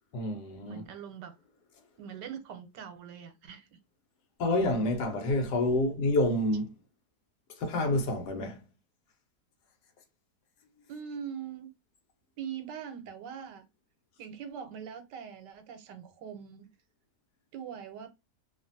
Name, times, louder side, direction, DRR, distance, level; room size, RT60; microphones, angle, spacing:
voice 1, 0.1-0.8 4.4-6.7 7.6-8.6, left 2 dB, 75° left, 1.3 m, -28 dB
voice 2, 0.6-1.4 2.0-3.8 10.9-11.7 12.4-13.6 14.2-16.7 17.5-18.1, right 8 dB, 80° right, 1.3 m, -42 dB
2.8 x 2.5 x 2.5 m
omnidirectional pair, 1.8 m